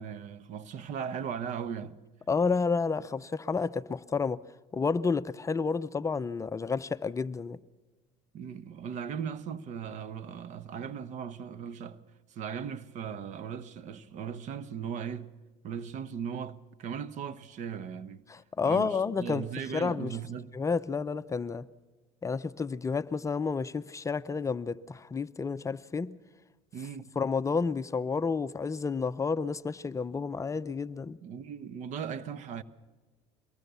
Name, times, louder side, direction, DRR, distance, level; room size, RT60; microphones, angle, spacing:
voice 1, 0.0-2.0 8.3-12.0 12.3-15.3 15.6-18.2 18.6-20.5 26.7-27.1 31.2-32.6, right 7 dB, 55° right, 1.1 m, -38 dB
voice 2, 2.3-4.4 4.7-7.6 18.3-19.5 19.7-20.2 20.5-21.7 22.2-26.2 27.2-31.2, left 5 dB, 20° left, 0.6 m, -30 dB
23.0 x 19.0 x 6.9 m
supercardioid pair, 95°, 15 cm